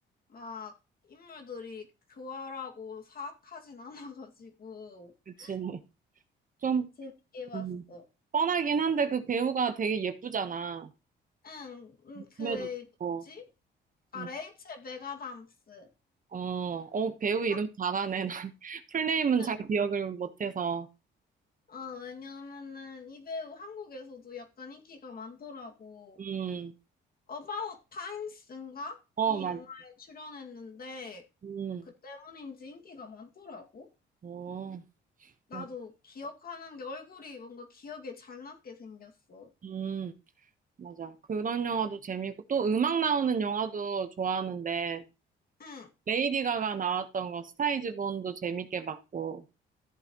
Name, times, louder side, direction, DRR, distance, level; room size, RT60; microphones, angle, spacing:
voice 1, 0.3-0.8 1.0-5.6 7.0-8.1 11.4-12.9 13.2-13.4 14.1-15.9 17.5-17.6 19.4-19.5 21.7-26.2 27.3-29.0 29.3-31.2 31.8-33.9 35.5-39.5 45.6-45.9, left 4 dB, 50° left, 3 dB, 2.2 m, -43 dB
voice 2, 5.3-5.8 6.6-6.9 7.5-7.8 8.3-10.9 12.2-12.7 13.0-13.2 14.2-14.3 16.3-20.9 26.2-26.7 29.2-29.6 31.4-31.8 34.2-34.8 35.5-35.6 39.6-40.1 40.8-45.0 46.1-49.4, right 6 dB, 40° right, 9 dB, 1.1 m, -31 dB
14.0 x 7.8 x 3.0 m, 0.28 s
cardioid pair, 90°, 20 cm